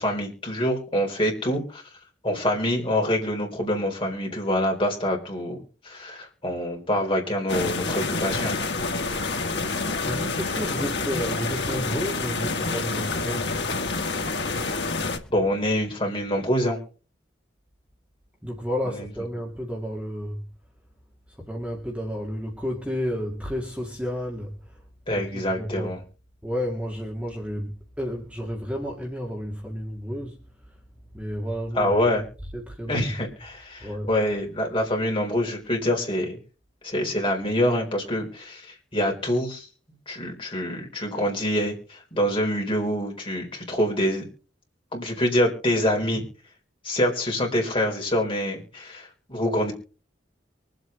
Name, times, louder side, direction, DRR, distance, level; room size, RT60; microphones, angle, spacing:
voice 1, 0.0-1.8 2.2-5.6 5.8-8.6 15.3-16.8 25.1-26.0 31.7-32.3 32.9-36.4 36.8-39.7 40.1-44.3 44.9-46.2 46.8-49.7, equal, 30° left, 4.3 m, -25 dB
sound 1, 7.5-15.2, left 3 dB, 65° left, 1.8 m, -28 dB
voice 2, 10.0-13.6 18.4-20.4 21.3-24.8 25.1-25.9 26.4-30.4 30.7-30.8 31.1-31.9 32.5-33.3 33.8-34.1, equal, 5° right, 2.2 m, -32 dB
24.0 x 8.1 x 3.9 m
head